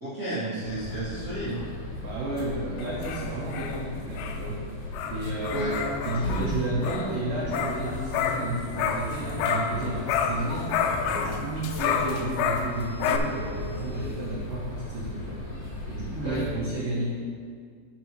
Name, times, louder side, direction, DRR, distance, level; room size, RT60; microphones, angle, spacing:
voice 1, 0.0-1.6 5.5-5.7 16.2-16.4, right 2 dB, 60° right, -14 dB, 0.8 m, -31 dB
sound 1, 0.6-16.6, left 2 dB, 60° left, 3.3 m, -37 dB
voice 2, 2.0-4.6 5.0-5.7 6.0-10.7 11.0-15.4 15.9-17.1, right 2 dB, 90° right, -5 dB, 1.9 m, -32 dB
sound 2, 2.8-9.8 10.1-13.2, left 6 dB, 85° left, 2.4 m, -30 dB
13.0 x 6.1 x 3.1 m, 2.1 s
omnidirectional pair, 5.5 m